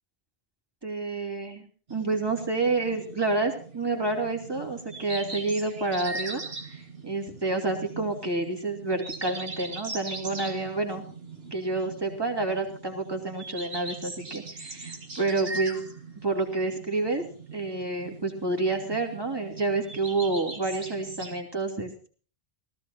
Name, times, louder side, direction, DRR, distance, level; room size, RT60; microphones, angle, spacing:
voice 1, 0.8-11.0 11.5-15.8 16.2-17.2 17.5-22.1, right 3 dB, 25° right, 2 dB, 2.8 m, -29 dB
sound 1, 1.9-21.4, right 3 dB, 75° right, 2.1 m, -41 dB
17.5 x 14.5 x 4.3 m, 0.40 s
omnidirectional pair, 1.0 m